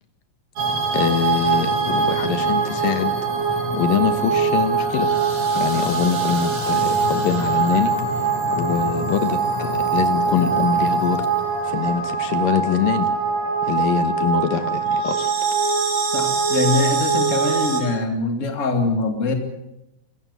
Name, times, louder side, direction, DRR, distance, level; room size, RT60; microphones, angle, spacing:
sound 1, 0.6-17.8, right 5 dB, 65° right, 5.5 m, -22 dB
voice 1, 0.9-3.1 3.7-5.1 5.5-7.9 8.5-11.2 11.6-13.1 13.6-15.3, left 8 dB, 80° left, 9 dB, 3.0 m, -23 dB
voice 2, 16.1-19.3, left 3 dB, 25° left, 5 dB, 2.4 m, -23 dB
25.0 x 15.0 x 8.3 m, 0.89 s
omnidirectional pair, 4.1 m